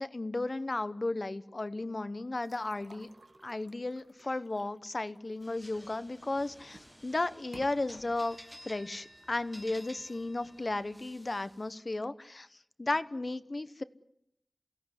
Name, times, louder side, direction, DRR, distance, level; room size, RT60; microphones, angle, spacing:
voice 1, 0.0-3.1 3.4-8.4 8.6-12.5 12.8-13.8, left 2 dB, 45° left, 13 dB, 1.1 m, -34 dB
sound 1, 2.4-6.2 6.6-7.0 7.4-7.7, right 2 dB, 65° right, 1.9 m, -55 dB
sound 2, 5.4-11.7, equal, ahead, 1.6 m, -54 dB
28.5 x 16.5 x 9.8 m, 0.80 s
wide cardioid pair, 70°, 0 cm